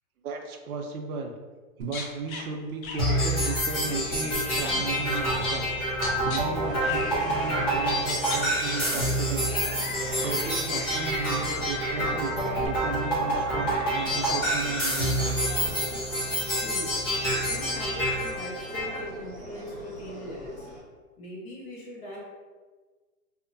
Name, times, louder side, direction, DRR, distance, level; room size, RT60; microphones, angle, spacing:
voice 1, 0.2-1.3 1.8-12.3 12.6-15.4, right 4 dB, 85° right, 4 dB, 0.6 m, -35 dB
sound 1, 1.8-2.4 2.8-5.7 5.9-6.4 6.8-7.6 7.8-12.7, left 4 dB, 75° left, 0.6 m, -39 dB
sound 2, 3.0-19.0, equal, 20° left, 0.4 m, -28 dB
sound 3, 3.8-20.8, right 1 dB, ahead, 1.2 m, -40 dB
voice 2, 16.5-16.9 17.5-20.7 21.2-22.2, left 1 dB, 45° left, -5 dB, 1.1 m, -40 dB
2.7 x 2.1 x 2.5 m, 1.4 s
hypercardioid pair, 145°, 42 cm